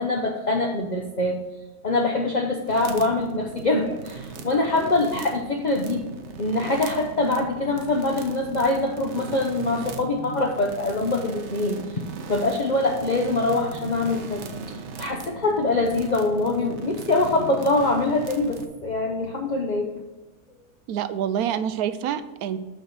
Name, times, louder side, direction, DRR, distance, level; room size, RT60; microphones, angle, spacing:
voice 1, 0.0-1.4 1.8-6.1 6.4-12.0 12.3-14.4 15.0-19.9, left 2 dB, 40° left, 1 dB, 0.7 m, -24 dB
sound 1, 2.7-18.7, right 4 dB, 55° right, 0.9 m, -39 dB
sound 2, 8.9-10.9 12.6-14.5 16.3-18.3, left 2 dB, 5° right, 1.0 m, -44 dB
voice 2, 20.9-22.6, right 9 dB, 80° right, 12 dB, 1.1 m, -27 dB
7.9 x 4.4 x 6.2 m, 1.2 s
omnidirectional pair, 1.6 m